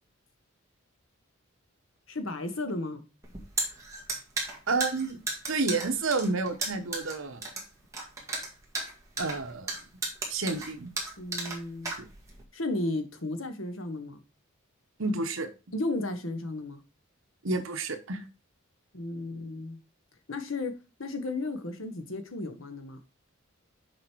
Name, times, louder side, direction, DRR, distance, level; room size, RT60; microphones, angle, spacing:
voice 1, 2.1-3.0 11.2-11.9 12.5-14.2 15.7-16.8 18.9-19.8 20.3-20.7 21.0-23.0, left 2 dB, 75° left, 1.3 m, -34 dB
sound 1, 3.2-12.4, right 2 dB, 15° right, 1.9 m, -35 dB
voice 2, 4.7-5.2 5.5-7.5 9.2-9.8 10.3-10.9 12.0-12.1 15.0-15.5 17.4-18.2, right 3 dB, 75° right, 1.1 m, -30 dB
6.6 x 5.1 x 4.6 m
head